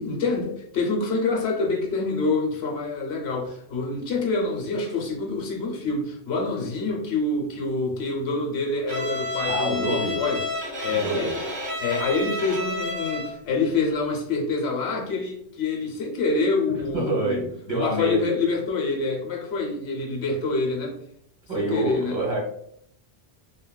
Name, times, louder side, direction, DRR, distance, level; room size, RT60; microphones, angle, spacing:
voice 1, 0.0-10.4 10.8-11.5 11.8-17.4 17.7-21.0 21.5-22.2, left 3 dB, 75° left, 0 dB, 0.9 m, -26 dB
Bowed string instrument, 8.9-13.4, left 2 dB, 70° right, 1.5 m, -30 dB
voice 2, 9.5-10.1 10.9-11.3 16.9-18.3 21.5-22.4, right 2 dB, 45° right, -4 dB, 1.2 m, -27 dB
3.6 x 2.3 x 2.2 m, 0.69 s
omnidirectional pair, 1.1 m